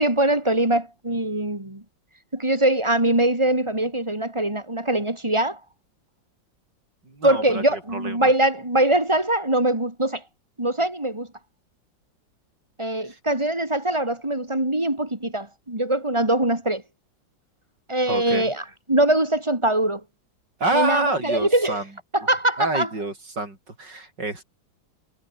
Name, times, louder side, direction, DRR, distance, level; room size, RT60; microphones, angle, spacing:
voice 1, 0.0-1.8 2.3-5.6 7.2-10.2 10.6-11.3 12.8-16.8 17.9-20.0 20.7-21.8 22.1-22.9, right 1 dB, 15° right, 4.1 m, -22 dB
voice 2, 7.0-8.3 13.0-13.2 18.1-18.5 20.6-21.9 22.6-24.4, right 2 dB, 60° right, 7.0 m, -28 dB
omnidirectional pair, 2.1 m